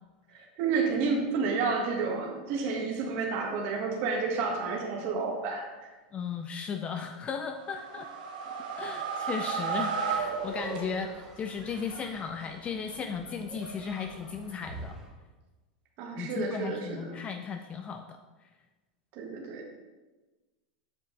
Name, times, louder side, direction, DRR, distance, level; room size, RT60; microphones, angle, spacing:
voice 1, 0.3-5.9 16.0-17.1 19.1-19.7, right 4 dB, 50° right, 0 dB, 1.6 m, -30 dB
voice 2, 6.1-8.1 8.8-15.0 16.2-18.2, left 6 dB, 25° left, 6 dB, 0.5 m, -36 dB
sound 1, 7.5-11.3, right 5 dB, 90° right, 1.5 m, -33 dB
sound 2, 10.1-15.1, right 2 dB, 10° right, 1.9 m, -47 dB
8.0 x 5.7 x 4.0 m, 1.2 s
supercardioid pair, 120°, 4 cm